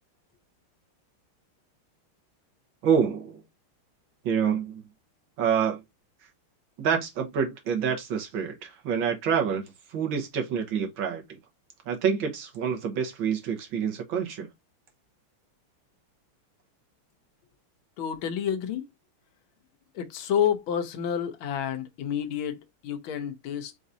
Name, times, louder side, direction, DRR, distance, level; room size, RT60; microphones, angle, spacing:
voice 1, 2.8-3.4 4.2-4.8 5.4-5.8 6.8-9.6 9.9-11.4 11.9-14.5, right 7 dB, 65° right, 1.8 m, -27 dB
voice 2, 18.0-18.9 19.9-23.8, left 9 dB, 75° left, 1.6 m, -29 dB
4.7 x 3.9 x 2.6 m
omnidirectional pair, 2.4 m